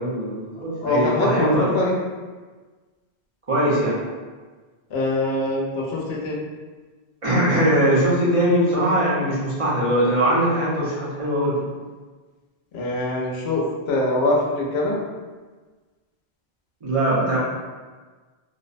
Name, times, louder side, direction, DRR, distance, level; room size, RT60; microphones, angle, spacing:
voice 1, 0.0-1.7 3.5-4.0 7.2-11.5 16.8-17.4, right 1 dB, 40° right, -7 dB, 0.6 m, -21 dB
voice 2, 0.8-1.9 4.9-6.4 12.7-15.0, left 2 dB, 75° left, -2 dB, 0.8 m, -23 dB
2.6 x 2.0 x 2.4 m, 1.4 s
omnidirectional pair, 1.1 m